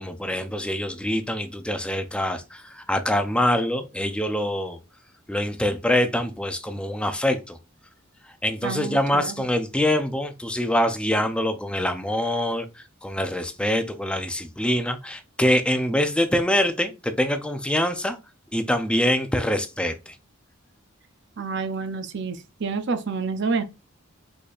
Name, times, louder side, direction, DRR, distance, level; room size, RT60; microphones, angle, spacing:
voice 1, 0.0-4.8 5.3-7.6 8.3-18.2 18.5-20.2, left 1 dB, 5° left, 0.6 m, -25 dB
voice 2, 8.6-9.3 21.4-23.6, right 4 dB, 55° right, 0.7 m, -28 dB
5.0 x 4.3 x 2.4 m
head